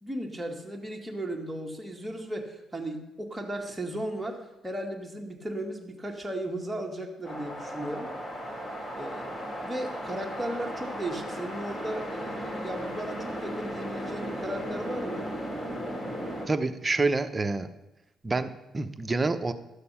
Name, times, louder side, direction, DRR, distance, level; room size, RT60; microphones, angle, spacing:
voice 1, 0.0-4.4 4.6-8.1 9.0-15.3, right 1 dB, 10° right, 1 dB, 1.8 m, -36 dB
sound 1, 7.2-16.5, equal, 30° left, 3.0 m, -36 dB
voice 2, 16.5-17.7 18.2-18.5 18.7-19.5, right 3 dB, 25° right, 9 dB, 0.7 m, -27 dB
12.0 x 6.8 x 5.6 m, 0.96 s
cardioid pair, 90°, 0 cm